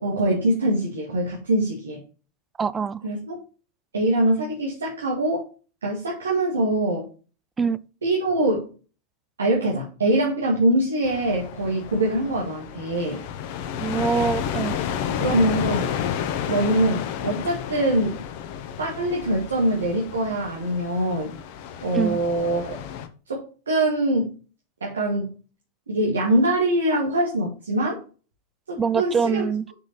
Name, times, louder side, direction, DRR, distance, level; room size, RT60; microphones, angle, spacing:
voice 1, 0.0-2.0 3.0-3.4 3.9-5.5 5.8-7.1 8.0-8.7 9.4-13.2 15.2-15.9 16.5-18.2 18.8-21.3 21.8-22.7 23.3-24.3 24.8-25.3 25.9-28.0 28.7-29.5, right 1 dB, 70° right, 2.1 m, -23 dB
voice 2, 2.6-3.0 7.6-7.8 13.8-14.7 21.9-22.2 28.8-29.7, right 6 dB, 15° right, 0.5 m, -24 dB
sound 1, 11.0-23.1, left 9 dB, 45° left, 1.1 m, -31 dB
6.5 x 6.0 x 4.3 m
figure-of-eight pair, 90°, 0 cm